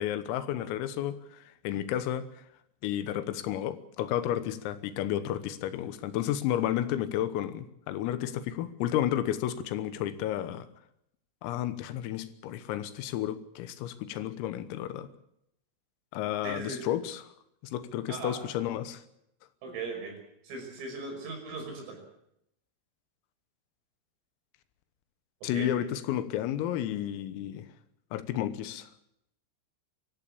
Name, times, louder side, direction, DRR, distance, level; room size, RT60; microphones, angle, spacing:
voice 1, 0.0-2.3 2.8-10.7 11.4-15.1 16.1-17.3 17.6-19.0 25.4-27.7 28.1-28.9, left 11 dB, 85° left, 3.9 m, -32 dB
voice 2, 16.4-16.8 18.1-18.4 19.6-20.2 20.4-22.0 25.4-25.8, right 3 dB, 75° right, 8.2 m, -38 dB
24.5 x 14.5 x 8.5 m
omnidirectional pair, 5.9 m